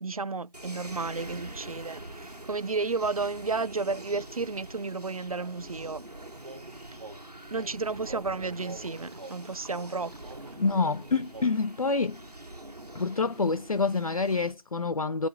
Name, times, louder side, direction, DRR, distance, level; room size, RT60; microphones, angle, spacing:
voice 1, 0.0-6.0 7.5-10.1, right 4 dB, 65° right, 0.4 m, -32 dB
sound 1, 0.5-14.5, right 1 dB, 90° right, 1.7 m, -45 dB
sound 2, 6.3-11.6, right 2 dB, 50° right, 1.0 m, -46 dB
voice 2, 10.6-12.2 12.9-15.3, left 4 dB, 65° left, 0.4 m, -27 dB
8.8 x 5.0 x 3.5 m
figure-of-eight pair, 165°, 20 cm